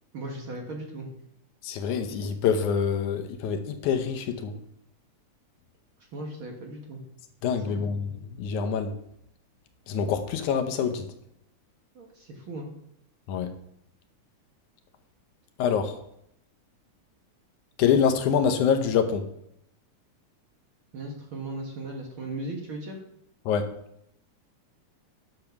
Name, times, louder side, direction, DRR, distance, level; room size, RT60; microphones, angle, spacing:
voice 1, 0.1-1.1 6.1-7.0 7.4-7.8 12.0-12.7 20.9-23.0, right 2 dB, 50° right, 1 dB, 1.8 m, -37 dB
voice 2, 1.6-4.6 7.4-8.9 9.9-11.1 13.3-13.5 15.6-16.0 17.8-19.3 23.5-23.7, left 7 dB, 75° left, 7 dB, 2.2 m, -25 dB
10.5 x 6.7 x 5.9 m, 0.75 s
omnidirectional pair, 3.6 m